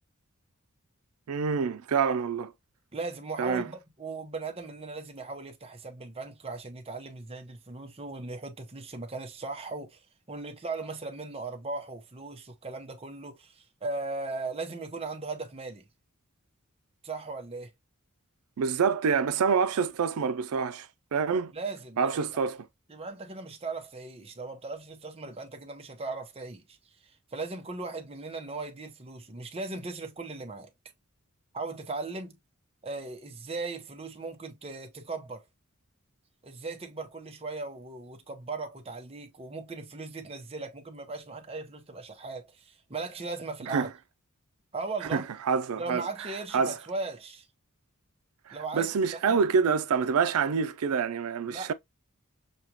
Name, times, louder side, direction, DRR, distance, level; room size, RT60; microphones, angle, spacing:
voice 1, 1.3-2.5 3.4-3.6 18.6-21.5 22.0-22.6 43.7-43.9 45.1-46.0 46.5-46.8 48.5-51.7, right 6 dB, 90° right, 0.4 m, -27 dB
voice 2, 2.9-15.9 17.0-17.7 21.5-22.4 22.9-30.7 31.5-32.4 32.8-35.4 36.4-43.9 44.7-45.2 45.8-47.5 48.5-49.5 51.5-51.7, right 3 dB, 25° right, 0.8 m, -38 dB
6.4 x 2.3 x 2.8 m
head